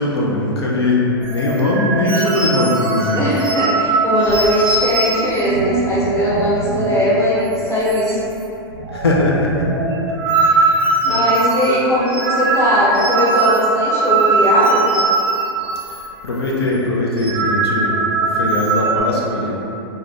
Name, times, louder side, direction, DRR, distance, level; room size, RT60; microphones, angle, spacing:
voice 1, 0.0-3.3 4.3-4.4 8.9-9.7 10.3-11.2 16.2-17.9 18.2-19.5, left 2 dB, 85° left, -3 dB, 0.4 m, -20 dB
sound 1, 1.2-7.2 7.5-7.6 7.9-8.4 8.7-16.1 16.3-16.6 17.0-19.0, right 3 dB, 70° right, 0.4 m, -20 dB
voice 2, 3.2-8.2 10.4-14.9, equal, 20° left, -9 dB, 0.9 m, -19 dB
2.4 x 2.1 x 3.4 m, 2.9 s
hypercardioid pair, 105°, 13 cm